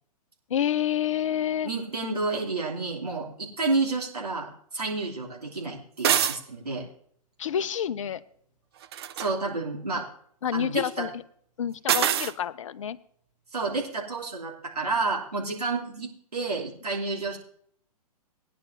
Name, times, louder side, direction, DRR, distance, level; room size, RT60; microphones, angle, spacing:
voice 1, 0.5-1.7 7.4-8.2 10.4-11.1 11.6-13.0, left 9 dB, 55° left, 14 dB, 0.6 m, -28 dB
voice 2, 1.6-6.9 9.2-10.1 10.5-11.1 13.5-17.4, right 3 dB, 75° right, -2 dB, 2.8 m, -30 dB
sound 1, 6.0-6.4 8.8-9.3 11.9-12.3, right 10 dB, 40° right, 0.5 m, -24 dB
18.0 x 10.0 x 2.7 m, 0.63 s
figure-of-eight pair, 115°, 20 cm